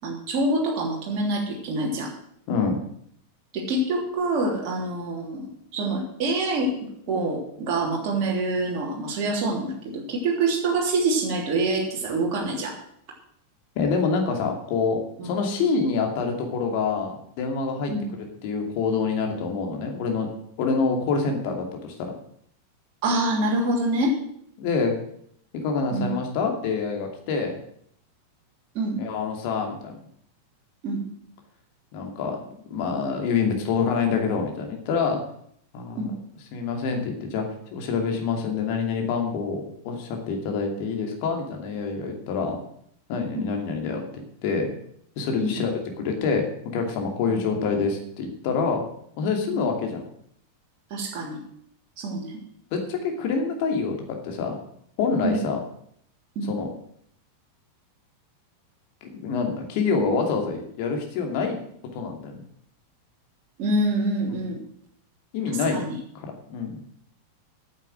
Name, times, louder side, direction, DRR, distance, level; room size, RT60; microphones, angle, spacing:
voice 1, 0.0-2.1 3.5-6.7 7.1-12.7 15.2-15.3 17.9-18.1 23.0-24.1 25.9-26.2 28.7-29.0 30.8-31.0 36.0-36.1 43.3-43.5 45.4-45.5 49.5-49.6 50.9-51.4 52.0-52.4 55.2-55.4 56.3-56.6 63.6-64.6 65.5-66.0, right 2 dB, 40° right, -2 dB, 3.3 m, -26 dB
voice 2, 2.5-2.8 13.8-17.9 18.4-20.3 20.6-22.1 24.6-24.9 25.5-27.6 29.0-30.0 31.9-35.2 35.7-36.1 36.5-37.4 37.7-42.6 43.1-44.0 44.4-44.7 45.2-45.7 46.0-46.4 46.7-48.8 49.2-50.0 52.7-53.9 54.2-54.5 55.0-55.6 56.5-56.7 59.2-61.6 61.9-62.4 64.4-64.5 65.3-65.8 66.1-66.8, left 5 dB, 45° left, 3 dB, 2.6 m, -26 dB
9.6 x 7.5 x 7.7 m, 0.69 s
figure-of-eight pair, 90°, 0 cm